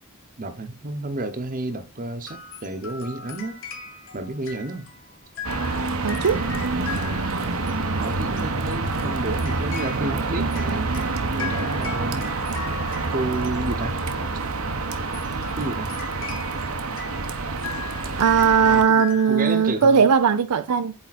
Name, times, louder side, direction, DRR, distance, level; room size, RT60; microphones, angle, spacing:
voice 1, 0.4-3.6 4.1-4.8 6.9-7.3 8.0-11.0 11.3-12.3 13.1-14.0 15.6-15.9 18.6-20.1, right 2 dB, 40° right, 0.9 m, -31 dB
sound 1, 2.3-14.2 14.8-20.1, left 5 dB, 60° left, 1.8 m, -39 dB
sound 2, 5.4-18.8, right 3 dB, 70° right, 1.0 m, -27 dB
voice 2, 6.0-6.5 18.2-20.9, right 6 dB, 85° right, 0.5 m, -18 dB
8.6 x 3.6 x 4.2 m
head